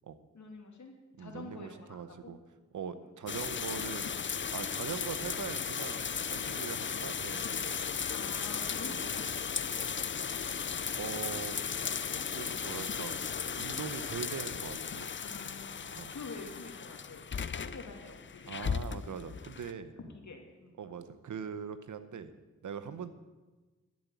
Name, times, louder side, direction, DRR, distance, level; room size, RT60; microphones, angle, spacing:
voice 1, 0.3-0.9 1.2-2.3 3.0-3.1 8.0-10.1 15.2-18.8 20.0-20.8 22.9-23.0, left 3 dB, 75° left, 3 dB, 2.5 m, -48 dB
voice 2, 1.2-2.4 2.7-4.1 4.5-7.7 8.9-9.0 10.9-11.6 12.1-13.2 13.6-15.1 16.0-16.1 18.5-19.9 20.8-22.3 22.6-23.1, right 7 dB, 85° right, 12 dB, 0.9 m, -41 dB
sound 1, 3.3-19.7, left 6 dB, 40° left, 0.5 m, -36 dB
13.0 x 7.5 x 8.1 m, 1.2 s
cardioid pair, 55°, 29 cm